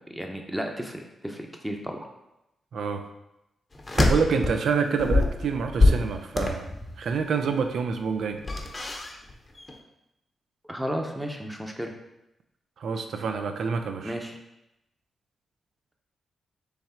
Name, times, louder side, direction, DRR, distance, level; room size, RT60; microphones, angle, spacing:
voice 1, 0.1-2.1 10.7-11.9 14.0-14.4, equal, 10° right, 2 dB, 0.8 m, -33 dB
voice 2, 2.7-3.0 3.9-6.7 7.0-8.4 12.8-14.2, right 5 dB, 75° right, 7 dB, 0.4 m, -27 dB
sound 1, 3.8-4.6 5.0-7.1 8.4-9.3 9.6-9.7, left 2 dB, 30° left, 0.7 m, -24 dB
3.5 x 3.2 x 4.3 m, 0.89 s
supercardioid pair, 45°, 0 cm